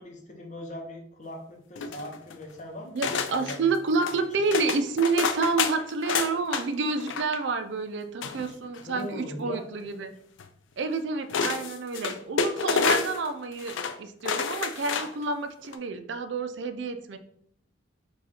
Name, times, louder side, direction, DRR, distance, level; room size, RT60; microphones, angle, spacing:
voice 1, 0.0-3.7 4.1-4.2 8.9-9.8, left 1 dB, 40° left, 2 dB, 0.9 m, -40 dB
sound 1, 1.8-2.4 3.0-3.6 4.0-4.2 4.5-6.6 7.0-7.4 8.2-9.0 10.4-10.5 11.3-13.3 13.6-14.0 14.2-15.2 15.6-15.8, left 5 dB, 90° left, 0.4 m, -29 dB
voice 2, 2.9-10.1 10.8-17.2, right 4 dB, 70° right, 8 dB, 0.4 m, -29 dB
4.8 x 2.4 x 4.3 m, 0.67 s
head